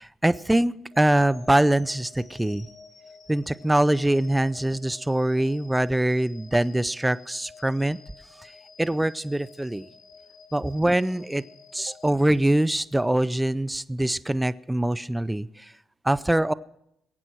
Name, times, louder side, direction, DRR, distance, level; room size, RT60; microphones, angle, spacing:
voice 1, 0.0-2.7 3.3-8.0 8.4-8.5 8.8-9.9 10.5-11.4 11.7-15.7 16.0-16.5, right 1 dB, 10° right, 17 dB, 0.5 m, -23 dB
sound 1, 0.9-13.0, left 4 dB, 55° left, 5.3 m, -51 dB
21.5 x 8.9 x 4.6 m, 0.77 s
cardioid pair, 90°, 0 cm